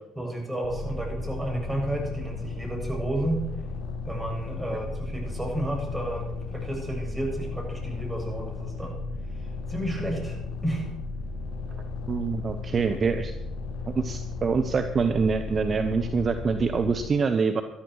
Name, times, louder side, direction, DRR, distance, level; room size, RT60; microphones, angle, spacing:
voice 1, 0.2-3.5 4.1-6.2 6.5-9.0 9.7-10.9, right 1 dB, 5° right, -1 dB, 7.8 m, -31 dB
sound 1, 0.6-17.1, left 4 dB, 70° left, 5.2 m, -35 dB
voice 2, 12.1-13.3 13.9-17.6, right 5 dB, 40° right, 8 dB, 1.0 m, -25 dB
18.5 x 12.5 x 4.8 m, 0.85 s
hypercardioid pair, 55°, 0 cm